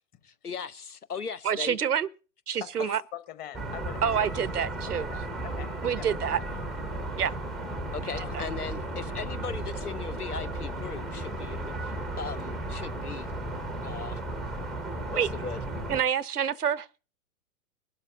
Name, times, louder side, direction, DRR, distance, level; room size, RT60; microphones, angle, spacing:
voice 1, 0.2-1.8 7.9-13.3 13.8-14.2 15.1-15.6, left 5 dB, 90° left, 0.9 m, -38 dB
voice 2, 1.4-2.1 2.5-3.0 4.0-5.1 5.8-6.4 7.2-7.3 8.3-8.5 15.2-15.3 15.9-17.0, right 8 dB, 85° right, 0.7 m, -27 dB
voice 3, 2.6-4.3 4.6-4.7 5.1-6.6 8.1-8.4, left 11 dB, 20° left, 0.9 m, -43 dB
sound 1, 3.5-16.0, right 1 dB, ahead, 0.5 m, -35 dB
22.5 x 12.0 x 2.6 m
figure-of-eight pair, 115°, 44 cm